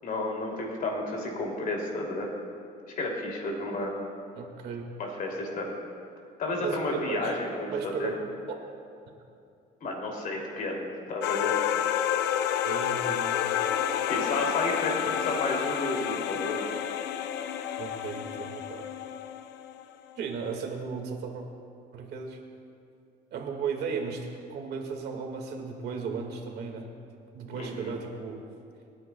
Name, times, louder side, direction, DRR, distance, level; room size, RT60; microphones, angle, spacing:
voice 1, 0.0-2.3 2.9-3.9 5.0-5.7 6.4-8.2 9.8-11.6 14.1-16.6 27.6-27.9, left 2 dB, 55° left, 0 dB, 2.7 m, -32 dB
voice 2, 4.4-4.8 6.6-6.8 7.1-7.4 7.7-8.2 8.5-8.6 12.7-13.6 17.8-18.8 20.2-21.4 21.9-22.4 23.3-26.9 27.3-28.4, right 5 dB, 75° right, 2 dB, 1.8 m, -35 dB
sound 1, 11.2-19.8, left 10 dB, 80° left, 0.6 m, -30 dB
27.5 x 9.7 x 2.3 m, 2.5 s
cardioid pair, 110°, 17 cm